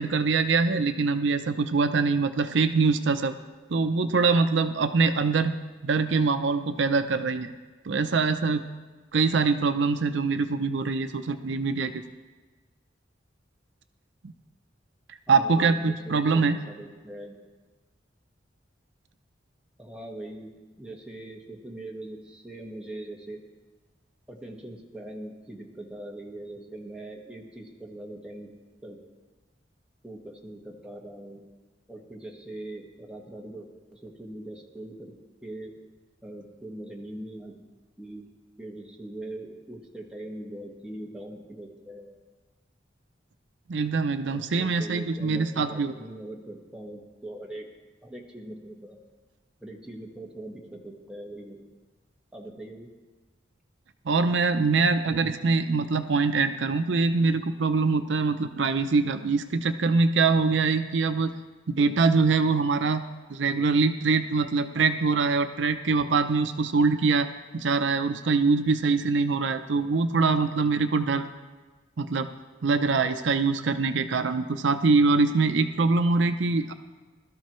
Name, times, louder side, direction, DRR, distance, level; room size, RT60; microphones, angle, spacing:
voice 1, 0.0-3.4 3.7-5.5 5.8-7.5 7.8-8.6 9.1-12.0 14.2-14.3 15.3-16.6 43.7-45.9 54.1-61.3 61.7-63.0 63.3-71.3 72.0-72.3 72.6-76.7, right 4 dB, 80° right, 9 dB, 0.6 m, -24 dB
voice 2, 15.3-17.4 19.8-20.5 20.8-23.4 24.3-28.5 28.8-29.0 30.0-31.4 31.9-35.1 35.4-35.7 36.2-37.5 38.0-38.3 38.6-42.1 44.3-47.7 48.0-49.0 49.6-51.6 52.3-52.9, right 1 dB, 5° right, -2 dB, 1.6 m, -41 dB
21.0 x 12.5 x 3.1 m, 1.3 s
head